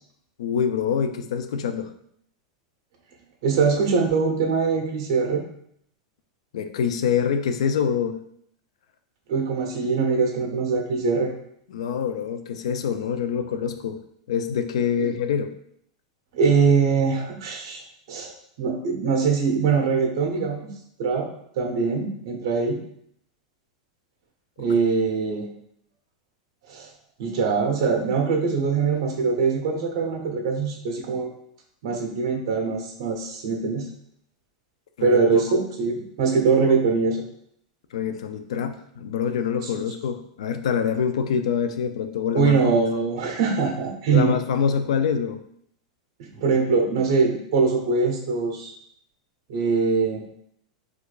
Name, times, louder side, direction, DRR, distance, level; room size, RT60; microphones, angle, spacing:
voice 1, 0.4-1.9 6.5-8.2 11.7-14.0 14.3-15.5 24.7-24.8 35.0-35.4 37.9-42.9 44.1-45.4, left 7 dB, 80° left, 8 dB, 0.3 m, -25 dB
voice 2, 3.4-5.4 9.3-11.3 15.0-15.1 16.3-17.8 18.1-18.3 18.6-20.7 21.0-21.3 21.6-22.8 24.6-25.5 26.7-26.9 27.2-31.3 31.8-33.9 35.0-37.2 42.3-44.4 46.3-48.7 49.5-50.2, right 5 dB, 50° right, 1 dB, 0.7 m, -22 dB
4.5 x 2.4 x 2.3 m, 0.69 s
supercardioid pair, 180°, 3 cm